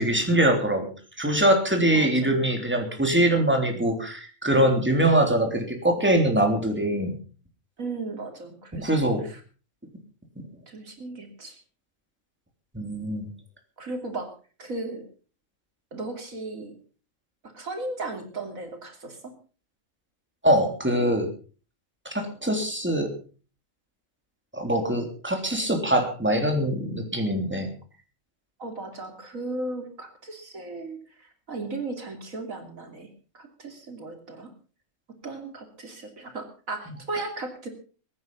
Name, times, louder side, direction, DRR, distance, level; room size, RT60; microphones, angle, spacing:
voice 1, 0.0-7.1 8.7-9.2 12.7-13.3 20.4-21.3 22.1-23.1 24.5-27.7, right 1 dB, 10° right, 3 dB, 3.4 m, -23 dB
voice 2, 1.9-2.4 7.8-9.4 10.7-11.6 13.8-14.3 14.6-15.0 15.9-16.8 17.4-19.3 28.6-34.5 35.2-37.7, right 2 dB, 85° right, 4 dB, 3.4 m, -36 dB
22.0 x 9.8 x 5.4 m, 0.39 s
omnidirectional pair, 1.4 m